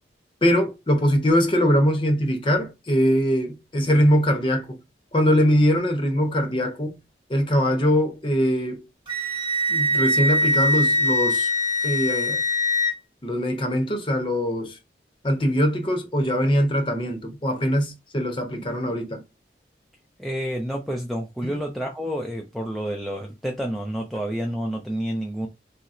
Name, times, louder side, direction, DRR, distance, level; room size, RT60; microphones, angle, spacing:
voice 1, 0.4-4.8 5.1-7.0 7.3-8.8 9.7-11.5 11.8-12.4 13.2-14.8 15.2-19.2, equal, 30° left, 0.7 m, -22 dB
Wind instrument woodwind instrument, 9.1-12.9, left 1 dB, 30° right, 1.0 m, -22 dB
voice 2, 20.2-25.5, equal, ahead, 0.3 m, -29 dB
4.1 x 2.0 x 2.4 m
head